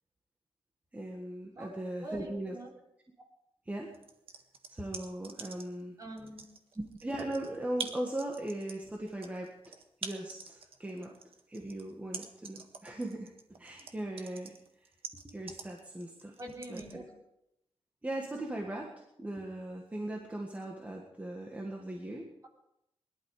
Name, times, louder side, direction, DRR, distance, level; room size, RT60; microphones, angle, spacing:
voice 1, 0.9-2.6 3.7-4.0 4.7-5.9 7.0-9.7 10.0-11.1 11.5-14.5 15.2-16.3 16.7-17.0 18.0-22.3, right 1 dB, 15° right, 0 dB, 1.7 m, -39 dB
voice 2, 1.5-2.7 6.0-6.4 16.4-17.1, right 1 dB, 35° right, -1 dB, 3.8 m, -44 dB
sound 1, 3.9-5.8 6.2-16.9, right 5 dB, 70° right, 1.5 m, -45 dB
21.0 x 12.0 x 5.0 m, 0.80 s
wide cardioid pair, 175°, 10 cm